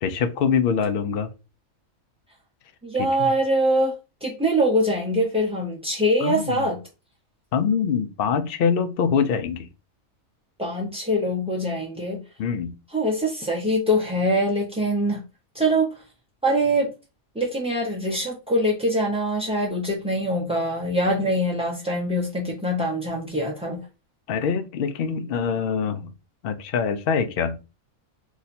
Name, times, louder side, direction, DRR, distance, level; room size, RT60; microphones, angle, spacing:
voice 1, 0.0-1.3 3.0-3.3 6.2-6.7 7.5-9.7 12.4-12.8 24.3-26.1 26.4-27.6, left 6 dB, 65° left, 0.6 m, -24 dB
voice 2, 2.8-3.9 4.2-6.8 10.6-12.2 12.9-15.2 15.5-15.9 16.4-16.9 17.4-23.8, equal, 10° right, 0.3 m, -23 dB
2.9 x 2.6 x 4.1 m
omnidirectional pair, 1.4 m